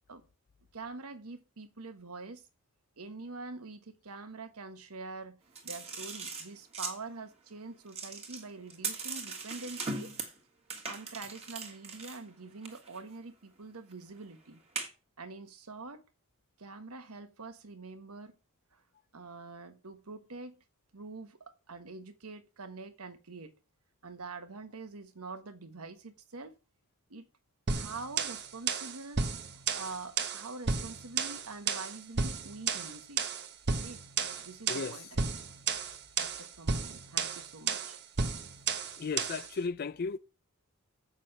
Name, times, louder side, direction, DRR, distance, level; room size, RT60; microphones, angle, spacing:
voice 1, 0.7-2.4 3.0-5.4 5.6-10.1 10.9-14.6 15.2-16.0 16.6-18.3 18.7-18.8 19.1-20.6 20.9-23.5 24.0-26.6 27.1-27.3 27.7-29.3 29.8-33.3 33.8-35.2 36.2-38.0, right 3 dB, 85° right, 1.3 m, -45 dB
sound 1, 5.5-7.0 7.9-10.4 10.7-12.2 12.6-13.0 13.7-13.9 14.7-14.9, right 4 dB, 30° right, 1.8 m, -39 dB
sound 2, 27.7-39.5, right 5 dB, 50° right, 1.0 m, -33 dB
voice 2, 34.7-35.0 39.0-40.2, left 4 dB, 45° left, 0.4 m, -35 dB
7.7 x 6.4 x 6.5 m
head